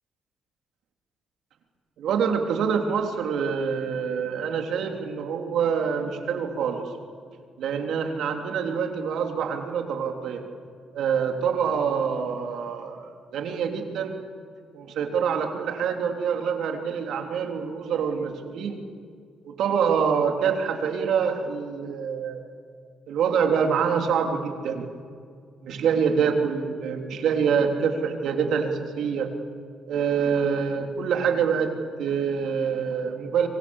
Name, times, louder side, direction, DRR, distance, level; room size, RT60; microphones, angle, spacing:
voice 1, 2.0-6.9 7.6-10.4 10.9-14.1 14.7-18.8 19.4-22.4 23.1-24.9 25.6-29.3 29.9-33.5, right 6 dB, 75° right, 4 dB, 3.4 m, -26 dB
27.5 x 25.0 x 7.3 m, 2.2 s
cardioid pair, 90°, 0 cm